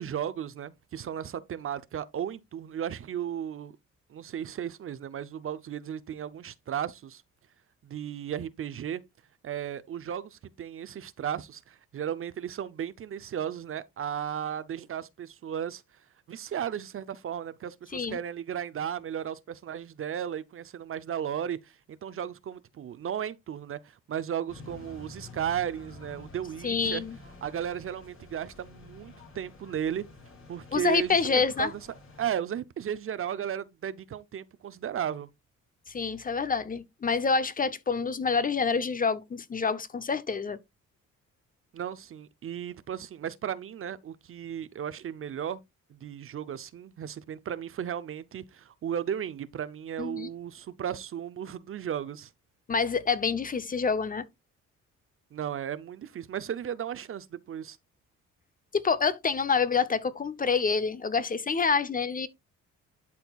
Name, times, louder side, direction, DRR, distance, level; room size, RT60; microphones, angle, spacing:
voice 1, 0.0-3.8 4.1-7.2 7.8-9.0 9.4-15.8 16.3-27.0 27.4-30.0 30.5-31.7 32.2-35.3 41.7-45.6 45.9-52.3 55.3-57.8, right 9 dB, 45° right, 0.6 m, -35 dB
sound 1, 24.5-32.3, left 3 dB, 45° left, 2.8 m, -49 dB
voice 2, 26.6-27.2 30.7-31.7 35.9-40.6 50.0-50.3 52.7-54.2 58.7-62.3, left 5 dB, 30° left, 0.6 m, -27 dB
11.5 x 4.3 x 2.3 m
cardioid pair, 90°, 30 cm